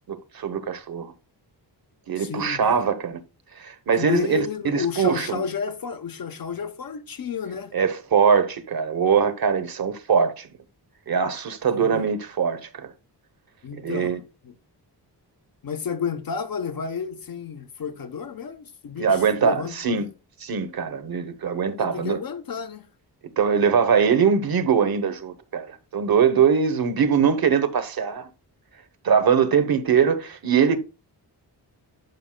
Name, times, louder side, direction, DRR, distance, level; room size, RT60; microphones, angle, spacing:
voice 1, 0.1-1.1 2.1-3.2 3.6-5.4 7.7-10.5 11.1-12.9 13.8-14.2 19.0-20.1 20.4-22.2 23.4-28.3 29.0-30.8, right 6 dB, 60° right, 1.0 m, -22 dB
voice 2, 2.2-2.9 4.0-7.7 11.7-12.1 13.6-14.2 15.6-20.0 21.8-22.9, left 6 dB, 55° left, 1.0 m, -31 dB
12.0 x 5.5 x 2.2 m
wide cardioid pair, 105°, 41 cm